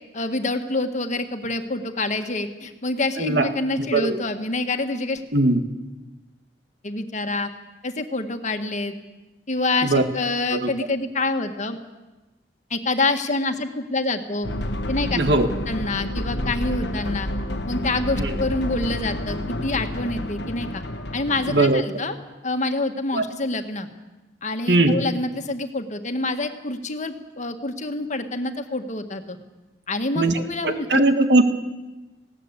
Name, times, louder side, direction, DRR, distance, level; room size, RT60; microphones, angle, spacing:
voice 1, 0.1-5.2 6.8-7.5 7.8-8.9 9.5-11.8 12.7-14.5 14.9-15.2 15.7-17.3 17.7-20.8 21.1-22.2 22.4-23.9 24.4-29.4 29.9-31.0, left 2 dB, 45° left, 6 dB, 1.7 m, -26 dB
voice 2, 3.2-3.5 3.8-4.2 5.3-5.6 9.8-10.0 10.5-10.7 15.1-15.5 18.2-18.4 21.5-21.8 23.1-23.2 24.7-25.0 30.1-31.4, right 2 dB, 70° right, 8 dB, 1.7 m, -20 dB
sound 1, 14.4-21.6, left 1 dB, 70° left, 1.3 m, -29 dB
19.5 x 17.5 x 8.2 m, 1.1 s
head